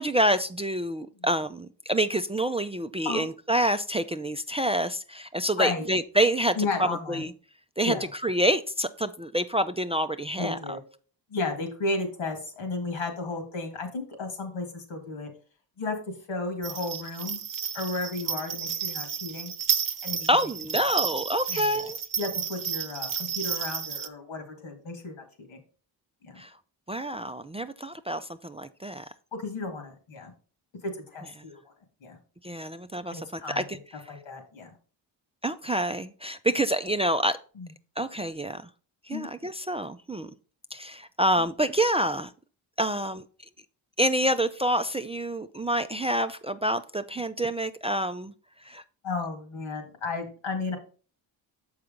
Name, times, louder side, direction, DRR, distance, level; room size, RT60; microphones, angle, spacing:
voice 1, 0.0-6.6 7.1-7.3 7.8-7.9 8.2-10.6 20.3-22.0 26.4-26.5 26.9-29.0 32.4-33.8 35.4-37.4 38.0-38.6 39.1-40.3 40.7-42.3 42.8-43.2 44.0-48.3 48.7-48.8, right 1 dB, 15° right, 0.4 m, -27 dB
voice 2, 5.6-5.9 6.6-7.2 7.8-8.1 10.4-10.8 11.3-15.3 15.8-16.0 16.3-17.4 17.7-19.5 20.0-20.3 21.5-21.9 22.2-25.6 26.2-26.4 29.3-30.3 30.8-31.6 32.0-32.2 33.1-33.8 34.1-34.7 37.6-37.7 39.1-39.3 49.0-50.8, left 3 dB, 85° left, 2.1 m, -33 dB
sound 1, 16.6-24.1, right 7 dB, 45° right, 0.8 m, -32 dB
6.7 x 4.8 x 5.1 m
cardioid pair, 60°, 46 cm